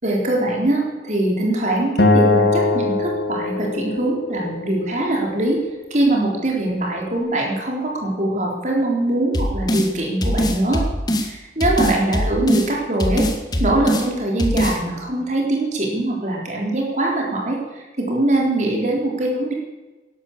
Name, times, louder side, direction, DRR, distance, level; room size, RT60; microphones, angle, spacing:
voice 1, 0.0-5.6 5.9-10.8 11.2-13.3 13.6-17.6 18.0-19.5, right 1 dB, 40° right, -1 dB, 3.9 m, -22 dB
Acoustic guitar, 2.0-5.2, left 2 dB, 70° left, 1.5 m, -21 dB
sound 1, 9.3-9.9 10.2-11.3 11.6-12.7 13.0-14.1 14.4-14.8, equal, 20° left, 1.5 m, -21 dB
12.0 x 11.5 x 8.6 m, 1.2 s
head